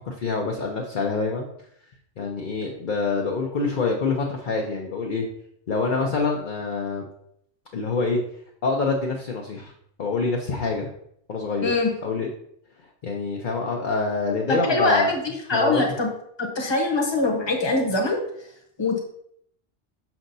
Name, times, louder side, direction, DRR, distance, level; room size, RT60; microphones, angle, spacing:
voice 1, 0.1-1.5 2.2-5.3 5.7-7.1 7.7-8.2 8.6-9.7 10.0-10.9 11.3-11.7 12.0-12.3 13.0-15.1 15.5-15.8, left 4 dB, 50° left, 0 dB, 0.8 m, -26 dB
voice 2, 14.5-15.2 15.5-16.1 16.4-18.2 18.8-19.0, left 2 dB, 25° left, 0 dB, 1.0 m, -22 dB
6.2 x 5.9 x 2.7 m, 0.71 s
omnidirectional pair, 1.2 m